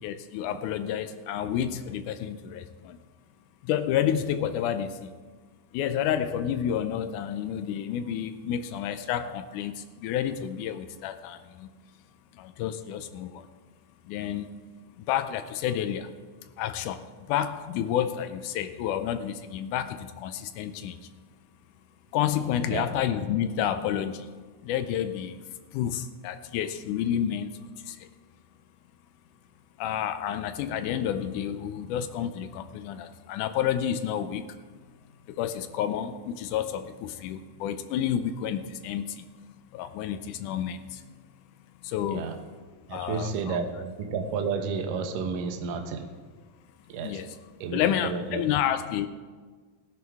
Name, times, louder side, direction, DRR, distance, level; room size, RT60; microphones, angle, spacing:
voice 1, 0.0-3.0 3.6-5.1 5.7-11.7 12.3-13.5 14.1-14.5 15.0-16.1 16.6-21.0 22.1-24.3 24.6-28.1 29.8-34.6 35.3-39.3 39.7-41.0 41.8-42.3 42.9-43.6 47.0-47.4 47.7-49.1, left 10 dB, 90° left, 9 dB, 1.8 m, -30 dB
voice 2, 42.9-46.1 46.9-47.2 47.6-48.5, right 5 dB, 70° right, 6 dB, 2.4 m, -31 dB
17.5 x 11.0 x 3.5 m, 1.5 s
omnidirectional pair, 4.2 m